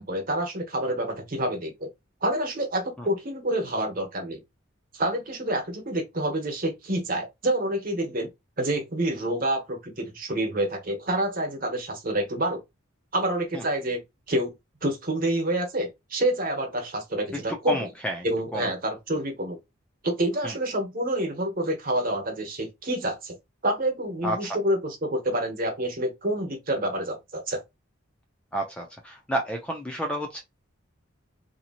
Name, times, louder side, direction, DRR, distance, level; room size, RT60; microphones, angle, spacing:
voice 1, 0.0-1.9 2.2-4.4 4.9-8.3 8.6-12.6 13.1-14.0 14.3-14.5 14.8-17.8 18.2-19.6 20.0-23.4 23.6-27.6, right 1 dB, 45° right, 1.0 m, -28 dB
voice 2, 17.5-18.3 18.5-18.7 20.4-20.5 24.2-24.6 28.5-30.4, equal, 5° left, 0.4 m, -30 dB
2.8 x 2.8 x 2.5 m
head